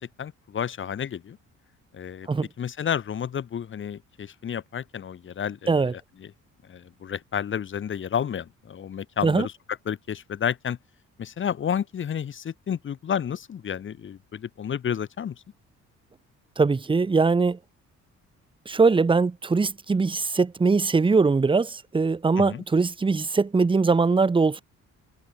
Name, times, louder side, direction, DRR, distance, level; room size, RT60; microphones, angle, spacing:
voice 1, 0.0-1.4 1.9-2.3 2.6-6.3 6.7-9.5 9.9-10.8 11.2-15.3 22.4-22.6, left 8 dB, 40° left, 0.9 m, -31 dB
voice 2, 16.6-17.6 18.7-24.6, right 4 dB, 15° right, 0.7 m, -21 dB
cardioid pair, 90°, 30 cm